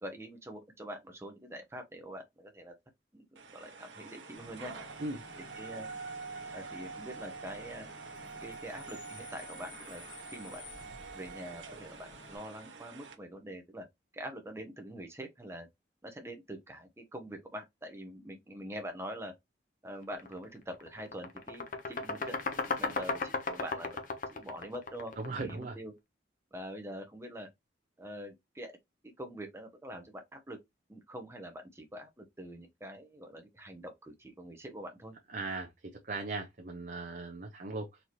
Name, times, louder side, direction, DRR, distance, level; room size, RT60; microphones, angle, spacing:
voice 1, 0.0-2.7 3.1-3.2 3.5-4.7 5.5-5.9 6.5-7.9 8.4-10.6 11.1-13.8 14.1-15.7 16.0-19.3 19.8-22.4 22.7-24.0 24.3-25.9 26.5-27.5 28.0-28.8 29.2-30.6 30.9-35.1, equal, 15° right, 0.7 m, -44 dB
sound 1, 3.4-13.1, right 4 dB, 85° right, 0.9 m, -46 dB
Bus / Idling / Screech, 4.4-12.4, left 3 dB, 75° left, 1.3 m, -53 dB
sound 2, 20.1-20.3 20.7-25.6, left 4 dB, 45° left, 0.8 m, -35 dB
voice 2, 25.2-25.8 35.3-35.7 36.0-38.0, right 3 dB, 45° right, 0.6 m, -38 dB
4.0 x 2.9 x 3.0 m
head